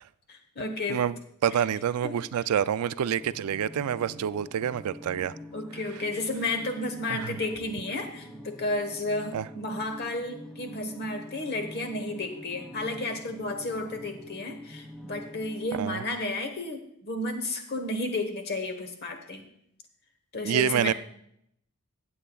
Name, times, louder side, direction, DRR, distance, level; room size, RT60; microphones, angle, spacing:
voice 1, 0.3-1.0 1.5-1.6 2.0-2.5 5.5-19.4 20.3-20.9, left 2 dB, 45° left, 1.2 m, -32 dB
voice 2, 1.4-5.3 7.1-7.4 9.3-9.4 15.8-16.0 20.4-20.9, right 9 dB, 85° right, 0.3 m, -27 dB
sound 1, 3.1-15.7, left 1 dB, 5° left, 0.6 m, -46 dB
17.0 x 7.9 x 2.3 m
head